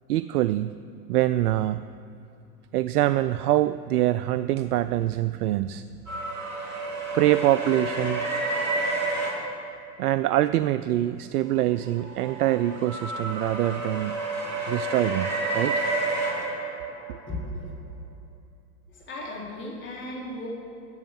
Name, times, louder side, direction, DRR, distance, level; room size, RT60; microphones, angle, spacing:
voice 1, 0.1-0.8 1.1-1.9 2.7-5.8 7.1-8.3 8.8-9.2 10.0-14.2 14.7-15.9 17.1-17.2, right 14 dB, 65° right, 14 dB, 0.5 m, -24 dB
sound 1, 6.1-9.3 11.7-17.2, right 2 dB, 30° right, 3.1 m, -30 dB
voice 2, 17.3-17.7 18.9-20.5, left 1 dB, 25° left, -3 dB, 3.6 m, -36 dB
13.5 x 7.9 x 7.5 m, 2.7 s
hypercardioid pair, 105°, 49 cm